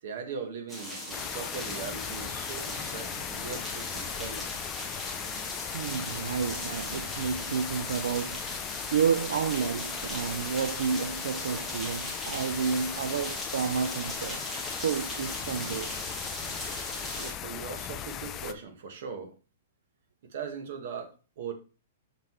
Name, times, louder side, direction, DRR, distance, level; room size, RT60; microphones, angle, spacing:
voice 1, 0.0-4.5 12.3-12.9 17.2-19.3 20.2-21.5, right 5 dB, 50° right, 1.5 m, -40 dB
sound 1, 0.7-17.3, left 1 dB, 5° right, 1.2 m, -39 dB
sound 2, 1.1-18.5, left 10 dB, 15° left, 0.4 m, -38 dB
voice 2, 5.7-14.5 14.7-16.1 17.2-17.3, right 6 dB, 75° right, 0.4 m, -31 dB
6.5 x 5.7 x 3.1 m
hypercardioid pair, 175°, 0 cm